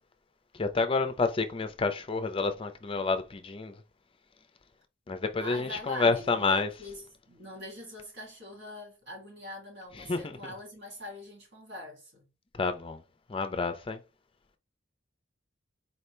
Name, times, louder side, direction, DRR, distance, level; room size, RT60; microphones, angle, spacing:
voice 1, 0.5-3.8 5.1-6.7 10.0-10.5 12.5-13.0 13.3-14.0, left 4 dB, 30° left, 0.5 m, -29 dB
voice 2, 5.4-12.3, left 1 dB, 60° right, 2.3 m, -44 dB
4.3 x 2.8 x 3.2 m
head